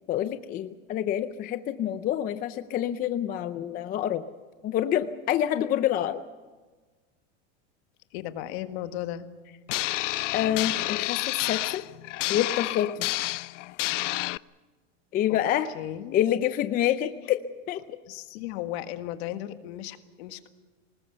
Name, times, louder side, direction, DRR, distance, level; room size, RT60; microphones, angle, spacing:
voice 1, 0.1-4.2 4.6-6.2 10.3-11.8 12.3-13.4 15.1-15.7 16.1-17.4 17.7-17.8, left 11 dB, 25° left, 11 dB, 0.6 m, -27 dB
voice 2, 8.1-9.3 15.3-15.4 15.7-16.2 18.1-20.5, left 13 dB, 55° left, 9 dB, 1.7 m, -35 dB
sound 1, 9.7-14.4, left 19 dB, 75° left, 0.6 m, -29 dB
24.5 x 20.0 x 6.9 m, 1.3 s
supercardioid pair, 150°, 37 cm